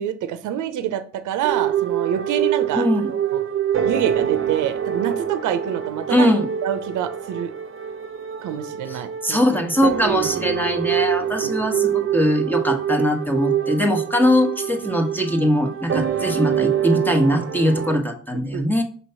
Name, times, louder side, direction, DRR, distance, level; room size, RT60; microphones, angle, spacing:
voice 1, 0.0-3.4 3.8-6.3 6.6-7.5 8.4-9.4 10.0-10.4 11.4-11.7 14.8-14.9 18.5-18.7, right 9 dB, 75° right, 11 dB, 0.7 m, -27 dB
sound 1, 1.4-18.0, right 9 dB, 45° right, 0.7 m, -25 dB
voice 2, 2.7-3.1 6.1-6.5 8.9-18.8, left 1 dB, 5° left, 5 dB, 1.2 m, -21 dB
5.6 x 3.0 x 5.5 m, 0.43 s
cardioid pair, 80°, 31 cm